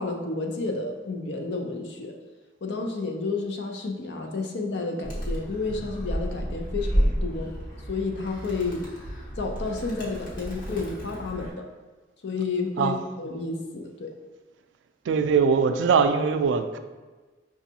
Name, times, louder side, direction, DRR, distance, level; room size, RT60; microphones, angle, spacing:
voice 1, 0.0-2.1 2.6-7.5 7.9-8.8 9.4-11.6 12.2-14.1, left 3 dB, 70° left, 2 dB, 0.5 m, -31 dB
Animal, 5.0-11.5, equal, 50° left, 1.1 m, -31 dB
voice 2, 15.1-16.8, right 6 dB, 80° right, 8 dB, 0.3 m, -21 dB
5.8 x 2.3 x 2.7 m, 1.3 s
head